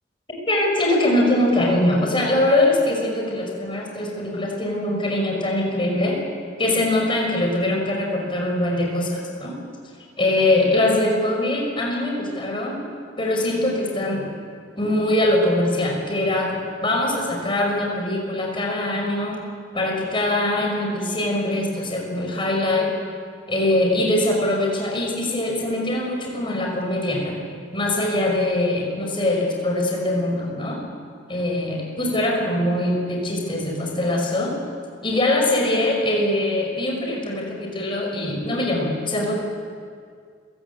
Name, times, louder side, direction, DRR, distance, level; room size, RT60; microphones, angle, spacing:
voice 1, 0.5-6.2 6.6-9.5 10.2-12.8 13.2-14.3 14.8-19.4 19.7-22.9 23.5-27.4 27.7-30.8 31.3-34.5 35.0-39.3, left 1 dB, 30° left, 0 dB, 5.7 m, -22 dB
29.5 x 18.0 x 8.4 m, 2.1 s
head